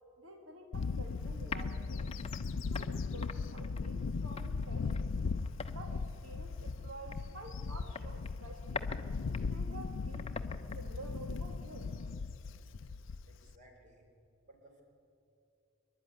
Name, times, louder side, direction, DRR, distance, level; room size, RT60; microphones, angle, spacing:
voice 1, 0.2-2.1 2.7-5.1 5.7-8.8 9.3-11.9, right 2 dB, 80° right, 4 dB, 1.5 m, -50 dB
Bird / Wind, 0.7-13.5, left 4 dB, 65° left, 0.4 m, -38 dB
sound 1, 0.7-12.1, left 4 dB, 30° left, 0.7 m, -48 dB
voice 2, 13.3-14.1 14.4-14.8, right 1 dB, 40° right, 2 dB, 3.5 m, -60 dB
24.0 x 11.5 x 9.6 m, 2.7 s
head